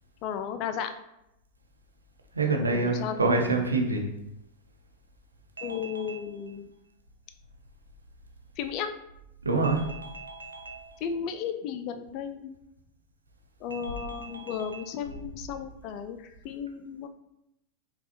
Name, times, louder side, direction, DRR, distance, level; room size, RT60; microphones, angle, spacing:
voice 1, 0.2-0.9 2.7-3.7 5.6-6.7 8.6-8.9 11.0-12.5 13.6-17.1, left 7 dB, 40° left, 9 dB, 0.4 m, -34 dB
voice 2, 2.3-4.0 5.6-6.2 9.4-10.9 13.7-14.7, right 3 dB, 75° right, 2 dB, 0.6 m, -28 dB
5.3 x 2.4 x 2.8 m, 0.84 s
figure-of-eight pair, 90°, 0 cm